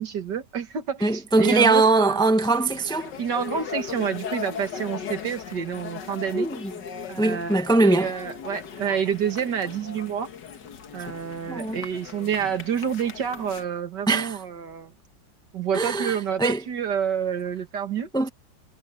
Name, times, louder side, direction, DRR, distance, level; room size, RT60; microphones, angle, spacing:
voice 1, 0.0-2.2 3.2-6.5 7.1-10.3 10.9-14.9 15.5-18.1, right 8 dB, 75° right, 2.2 m, -28 dB
voice 2, 1.0-3.1 6.3-6.7 7.2-8.1 11.5-11.8 14.1-14.4 15.7-16.6 18.1-18.3, right 2 dB, 5° left, 0.9 m, -21 dB
sound 1, 2.4-13.6, left 7 dB, 80° left, 2.1 m, -38 dB
omnidirectional pair, 1.9 m